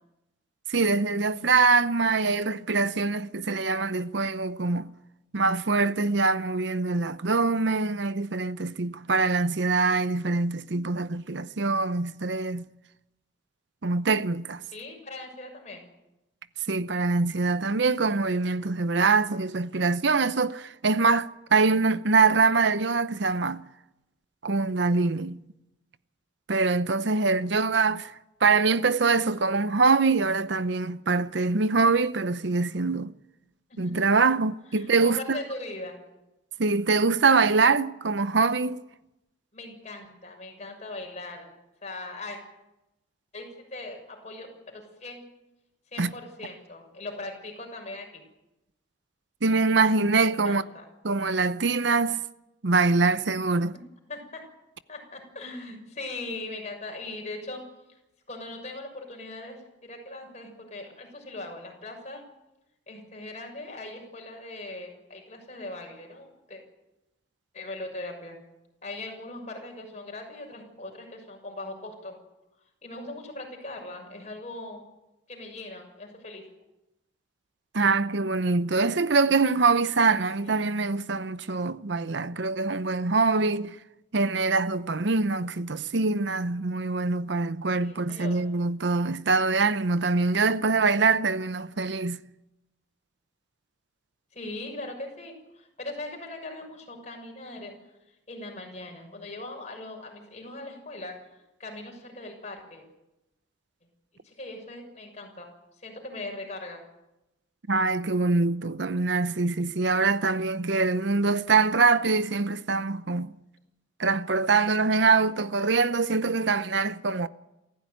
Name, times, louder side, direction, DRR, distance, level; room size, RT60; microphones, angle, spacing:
voice 1, 0.7-4.9 5.3-12.7 13.8-14.6 16.7-23.6 24.4-25.4 26.5-28.1 28.4-33.1 33.8-35.4 36.6-38.8 46.0-46.1 49.4-50.6 51.0-52.2 52.6-53.7 77.7-83.8 84.1-92.2 107.7-113.3 114.0-117.3, right 4 dB, 65° right, 0.8 m, -24 dB
voice 2, 14.7-15.8 27.5-27.6 33.7-33.9 34.7-36.0 39.5-41.5 41.8-42.4 43.3-45.2 45.9-48.2 50.2-50.8 53.7-53.8 54.1-54.4 54.9-57.6 58.3-62.2 62.9-66.6 67.5-68.4 68.8-72.2 72.8-74.8 75.3-76.4 80.4-80.6 87.8-88.5 94.3-97.7 98.3-101.2 101.6-102.8 104.2-106.8, left 2 dB, 35° left, 6.7 m, -40 dB
28.0 x 15.0 x 9.4 m
head